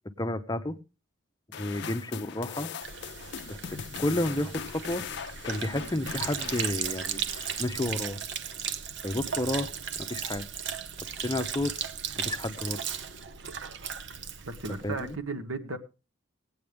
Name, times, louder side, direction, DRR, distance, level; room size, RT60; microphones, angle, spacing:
voice 1, 0.2-0.8 1.6-2.7 3.5-5.0 5.4-8.2 9.0-9.7 9.9-10.4 11.2-11.7 12.2-12.8 14.8-15.2, left 1 dB, 20° left, 0.7 m, -31 dB
sound 1, 1.5-8.1, left 7 dB, 55° left, 0.5 m, -40 dB
Sink (filling or washing), 2.8-15.2, right 8 dB, 55° right, 0.8 m, -36 dB
voice 2, 14.4-15.8, right 3 dB, 80° right, 1.5 m, -35 dB
19.0 x 8.7 x 3.5 m
head